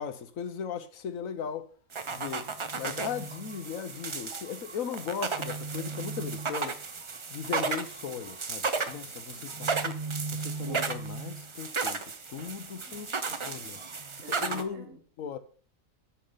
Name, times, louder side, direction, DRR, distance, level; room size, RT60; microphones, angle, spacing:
voice 1, 0.0-1.7 2.1-2.5 2.8-6.8 7.3-10.0 10.3-12.0 12.3-13.1 13.4-13.8 14.4-14.9 15.2-15.4, left 7 dB, 75° left, 1.3 m, -37 dB
sound 1, 1.9-14.6, right 4 dB, 35° right, 0.5 m, -34 dB
voice 2, 9.3-9.9 12.8-15.0, right 3 dB, 70° right, 2.0 m, -50 dB
8.6 x 7.1 x 5.5 m
omnidirectional pair, 1.4 m